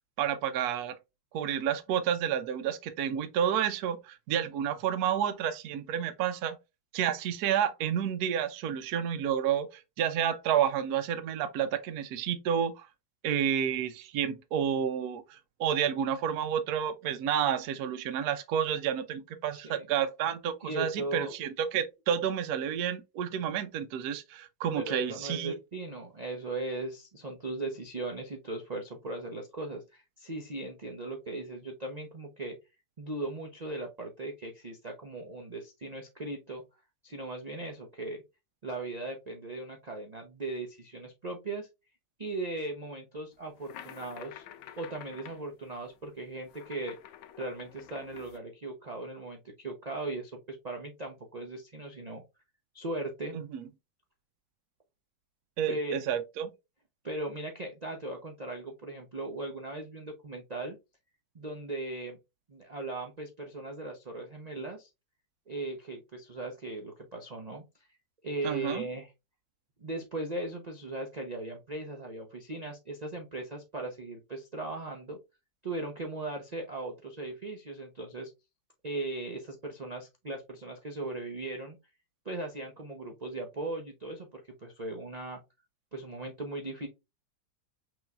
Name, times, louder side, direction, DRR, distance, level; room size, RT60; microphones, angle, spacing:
voice 1, 0.2-1.0 1.3-6.6 6.9-12.9 13.2-25.5 53.3-53.6 55.6-56.5 68.4-68.8, right 9 dB, 70° right, 1.0 m, -30 dB
voice 2, 19.5-19.9 20.6-21.3 24.8-32.6 33.0-36.6 37.0-38.2 38.6-41.7 42.2-44.4 44.8-47.0 47.4-52.2 52.7-53.4 55.7-56.0 57.0-60.8 61.3-62.2 62.5-64.9 65.5-67.6 68.2-69.1 69.8-75.2 75.6-78.3 78.8-81.8 82.2-85.4 85.9-86.9, right 2 dB, 85° right, 0.3 m, -38 dB
sound 1, 43.4-48.4, left 10 dB, 75° left, 1.2 m, -49 dB
6.1 x 3.1 x 2.3 m
omnidirectional pair, 2.0 m